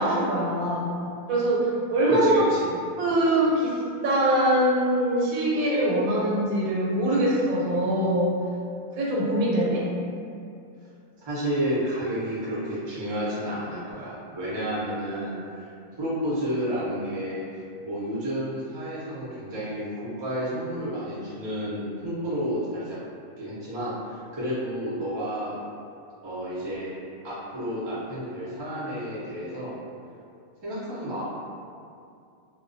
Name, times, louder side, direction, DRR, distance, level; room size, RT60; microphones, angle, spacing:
voice 1, 0.0-2.5 3.0-3.8 4.0-8.4 9.0-9.8, right 1 dB, 85° right, -5 dB, 1.0 m, -23 dB
voice 2, 2.2-2.7 11.2-15.7 16.0-23.0 23.4-25.6 26.2-26.9 27.2-29.8 30.6-31.2, equal, 35° right, -9 dB, 0.4 m, -31 dB
2.3 x 2.2 x 2.5 m, 2.4 s
omnidirectional pair, 1.4 m